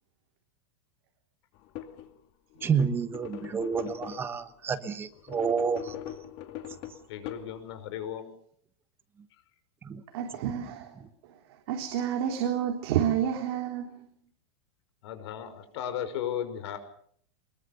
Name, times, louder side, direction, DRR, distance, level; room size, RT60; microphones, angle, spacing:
sound 1, 1.5-2.1 2.5-4.5 5.1-7.9, left 11 dB, 40° left, 2.3 m, -41 dB
voice 1, 2.6-6.0 9.8-10.0, right 6 dB, 15° right, 1.2 m, -29 dB
voice 2, 7.1-8.3 15.0-16.8, left 9 dB, 65° left, 5.7 m, -35 dB
voice 3, 10.1-11.0 11.7-14.1, right 9 dB, 55° right, 3.7 m, -29 dB
24.0 x 22.0 x 6.8 m
supercardioid pair, 165°, 15 cm